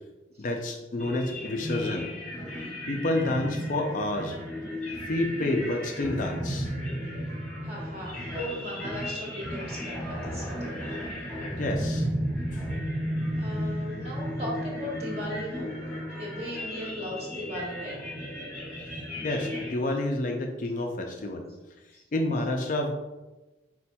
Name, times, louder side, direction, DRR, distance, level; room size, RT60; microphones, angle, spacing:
voice 1, 0.4-2.1 2.9-4.4 5.1-6.7 11.6-12.1 12.5-12.7 19.2-21.5 22.1-22.9, left 1 dB, 45° left, 2 dB, 0.4 m, -29 dB
sound 1, 1.0-19.7, equal, 10° left, 1.2 m, -34 dB
voice 2, 7.6-11.1 13.4-15.7 16.1-18.0 21.9-22.0, equal, 35° right, -4 dB, 1.2 m, -37 dB
4.3 x 4.2 x 2.2 m, 1.1 s
head